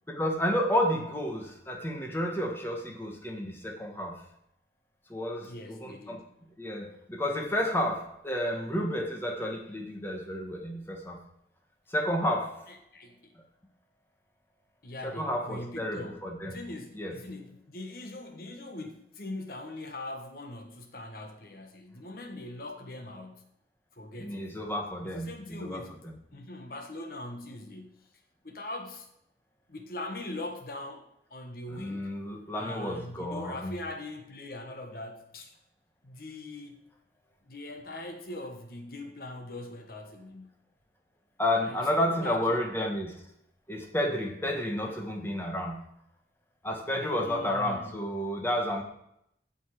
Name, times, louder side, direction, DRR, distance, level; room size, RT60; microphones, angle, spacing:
voice 1, 0.2-4.2 5.1-6.2 6.6-11.2 11.9-12.6 15.0-16.5 16.9-17.1 24.2-26.1 31.7-33.7 41.4-43.1 43.7-45.8 46.6-48.8, left 1 dB, 10° left, 2 dB, 1.6 m, -31 dB
voice 2, 5.4-6.3 12.7-13.3 14.8-23.5 23.9-24.6 25.0-26.0 26.3-28.1 28.4-29.1 29.7-32.1 32.5-35.6 36.0-36.8 37.4-40.5 41.6-42.6 44.8-45.0 46.9-48.0, left 2 dB, 55° left, 4 dB, 1.2 m, -41 dB
15.5 x 5.5 x 4.9 m, 0.76 s
head